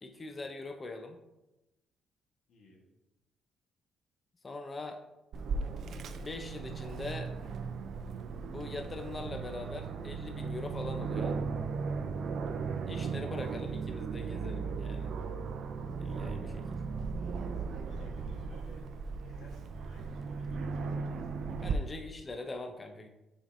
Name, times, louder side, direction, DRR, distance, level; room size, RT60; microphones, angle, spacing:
voice 1, 0.0-1.2 4.4-5.0 6.2-7.3 8.5-11.4 12.9-15.1 16.0-16.7 21.6-23.1, left 2 dB, 30° left, 5 dB, 0.7 m, -42 dB
voice 2, 2.5-2.8 12.4-12.7 17.8-18.9 19.2-22.1, left 1 dB, 75° left, 0 dB, 1.3 m, -58 dB
Aircraft, 5.3-21.7, right 5 dB, 65° right, 0.4 m, -37 dB
7.0 x 5.2 x 2.6 m, 0.96 s
cardioid pair, 90°, 0 cm